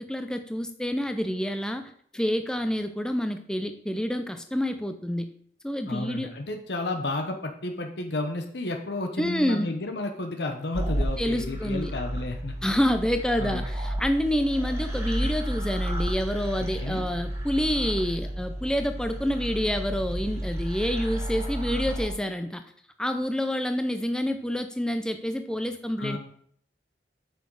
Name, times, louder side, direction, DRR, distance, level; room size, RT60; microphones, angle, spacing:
voice 1, 0.0-5.3 5.6-6.3 9.2-9.7 11.2-11.9 12.6-22.6 23.0-26.2, equal, 5° left, 7 dB, 0.4 m, -28 dB
voice 2, 5.9-12.6 13.4-13.6 16.8-17.0 26.0-26.2, left 2 dB, 70° left, 4 dB, 1.0 m, -32 dB
sound 1, 10.7-22.1, right 1 dB, 15° right, 1.5 m, -32 dB
9.1 x 6.3 x 4.7 m, 0.63 s
head